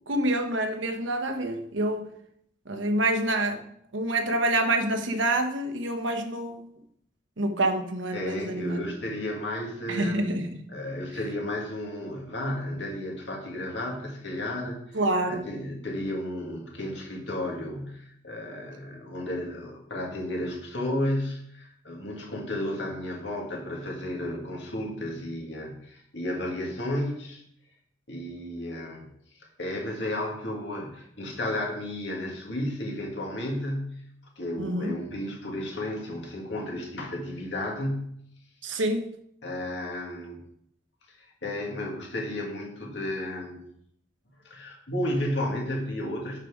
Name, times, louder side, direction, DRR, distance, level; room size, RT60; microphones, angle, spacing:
voice 1, 0.1-2.1 2.7-3.6 3.9-6.7 7.4-8.8 9.9-10.7 14.9-15.4 34.6-35.0 38.6-39.1, right 1 dB, 85° right, 6 dB, 1.1 m, -27 dB
voice 2, 8.1-10.3 10.7-27.4 28.1-29.1 29.4-34.1 34.4-38.1 39.4-40.4 41.2-43.6 44.4-46.5, left 1 dB, 65° left, -1 dB, 2.2 m, -33 dB
7.4 x 5.6 x 4.9 m, 0.70 s
head